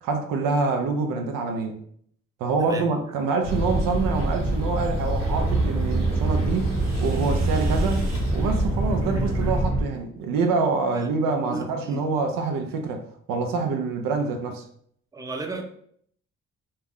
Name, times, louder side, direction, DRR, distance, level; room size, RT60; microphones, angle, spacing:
voice 1, 0.0-1.8 2.4-13.0 13.3-14.6, right 4 dB, 80° right, 4 dB, 0.5 m, -26 dB
sound 1, 3.4-8.7, equal, 75° left, 0.7 m, -32 dB
sound 2, 3.5-9.8, right 2 dB, 35° right, 1.2 m, -25 dB
sound 3, 5.0-9.6 9.9-10.6, right 2 dB, 50° right, 0.8 m, -43 dB
voice 2, 11.5-12.0 15.1-15.6, right 2 dB, 10° right, 3 dB, 0.5 m, -34 dB
2.3 x 2.1 x 3.5 m, 0.64 s
hypercardioid pair, 40°, 34 cm